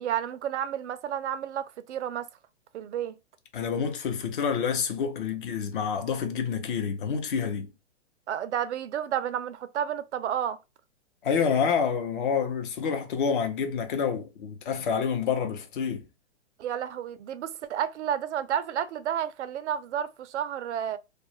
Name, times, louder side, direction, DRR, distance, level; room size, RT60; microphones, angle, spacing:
voice 1, 0.0-2.3 2.7-3.2 8.3-10.6 16.6-21.0, right 9 dB, 75° right, 0.5 m, -31 dB
voice 2, 3.5-7.7 11.2-16.0, left 6 dB, 45° left, 0.6 m, -28 dB
2.3 x 2.0 x 2.9 m
hypercardioid pair, 145°, 35 cm